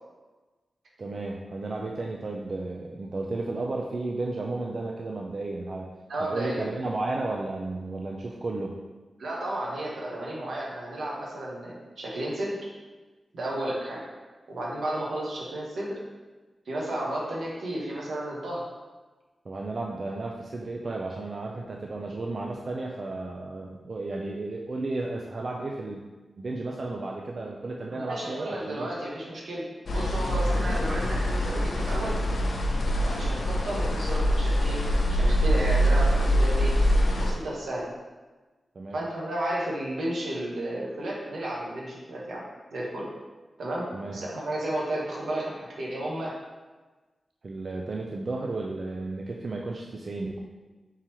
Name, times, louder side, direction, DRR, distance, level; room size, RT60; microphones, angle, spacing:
voice 1, 1.0-5.9 6.2-8.7 19.5-26.0 26.4-28.9 30.7-30.8 38.8-39.0 43.9-44.2 47.4-50.4, right 2 dB, 55° right, -1 dB, 0.4 m, -33 dB
voice 2, 6.1-6.7 9.2-12.6 13.3-14.0 14.5-16.0 16.7-18.7 28.0-29.7 29.9-32.2 32.9-34.8 35.1-36.8 37.1-37.9 38.9-42.4 42.7-43.1 43.6-46.3, right 1 dB, 85° right, -4 dB, 1.0 m, -32 dB
sound 1, 29.9-37.3, equal, 70° left, 0.6 m, -24 dB
3.8 x 2.9 x 4.3 m, 1.3 s
wide cardioid pair, 80°, 0 cm